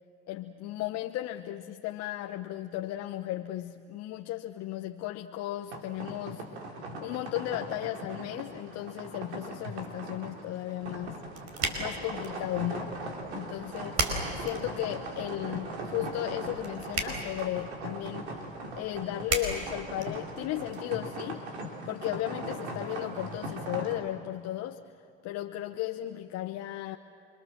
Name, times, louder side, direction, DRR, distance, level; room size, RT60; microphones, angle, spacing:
voice 1, 0.3-6.4 7.0-11.2 11.8-13.0 13.3-13.9 14.3-18.3 18.8-21.4 21.9-24.8 25.2-27.0, left 14 dB, 55° left, 6 dB, 1.0 m, -35 dB
sound 1, 5.7-23.9, right 2 dB, 90° right, 3.6 m, -40 dB
sound 2, 10.8-20.8, right 3 dB, 50° right, 5.0 m, -38 dB
28.5 x 24.0 x 7.6 m, 2.7 s
hypercardioid pair, 85°, 31 cm